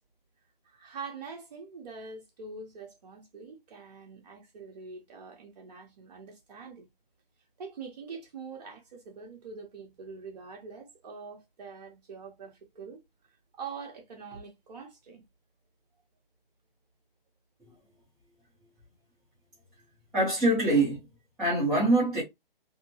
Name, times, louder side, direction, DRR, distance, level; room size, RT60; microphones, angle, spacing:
voice 1, 0.6-6.9 7.6-13.0 13.3-15.2, right 5 dB, 45° right, 1.3 m, -44 dB
voice 2, 20.1-21.1 21.4-22.2, right 2 dB, 5° right, 0.6 m, -24 dB
3.4 x 2.0 x 2.9 m
hypercardioid pair, 150°, 29 cm